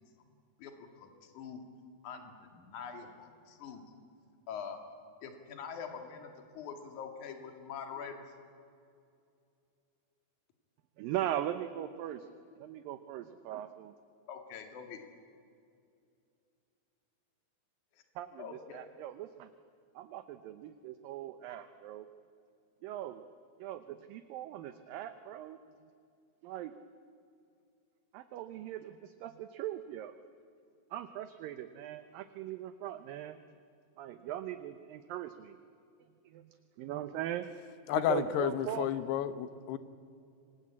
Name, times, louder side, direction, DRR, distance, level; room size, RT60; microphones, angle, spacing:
voice 1, 0.6-1.6 2.0-3.8 4.5-4.8 5.2-8.2 14.3-15.1 18.4-18.8, left 6 dB, 50° left, 4 dB, 3.3 m, -44 dB
voice 2, 11.0-12.3 12.6-13.9 18.2-19.5 20.0-22.1 22.8-23.2 23.6-25.6 26.4-26.7 28.1-30.2 30.9-33.4 34.0-35.6 36.3-37.5 37.9-38.9, right 12 dB, 75° right, 9 dB, 2.2 m, -40 dB
voice 3, 37.9-39.8, left 11 dB, 80° left, 12 dB, 3.0 m, -31 dB
26.5 x 21.5 x 8.5 m, 2.4 s
omnidirectional pair, 4.7 m